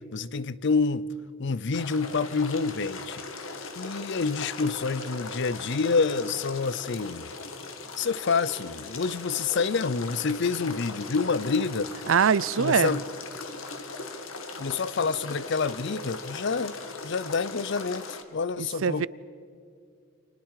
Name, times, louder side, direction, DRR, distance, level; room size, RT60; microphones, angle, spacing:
voice 1, 0.1-1.0 1.4-3.2 3.8-7.3 8.0-11.9 12.6-13.0 14.6-16.8 17.0-19.1, left 4 dB, 60° left, 0.6 m, -28 dB
sound 1, 1.7-18.2, left 3 dB, 80° left, 1.9 m, -39 dB
voice 2, 12.1-12.9 18.6-19.1, right 7 dB, 70° right, 0.5 m, -23 dB
29.5 x 27.0 x 4.9 m
head